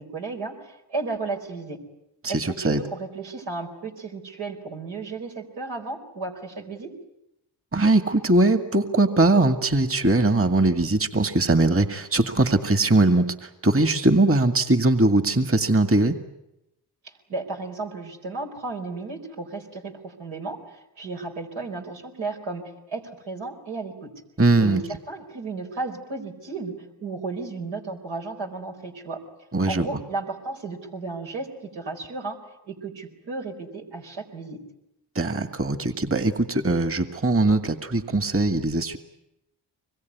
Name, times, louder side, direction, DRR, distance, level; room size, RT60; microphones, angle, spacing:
voice 1, 0.0-1.8 2.3-6.9 17.0-24.1 24.6-29.2 29.7-32.4 32.7-34.6, right 3 dB, 85° right, 1 dB, 4.5 m, -34 dB
voice 2, 2.2-2.8 7.7-16.2 24.4-24.8 29.5-29.9 35.2-39.0, right 2 dB, 30° right, 8 dB, 2.1 m, -21 dB
25.0 x 22.0 x 9.5 m, 0.89 s
supercardioid pair, 40°, 45 cm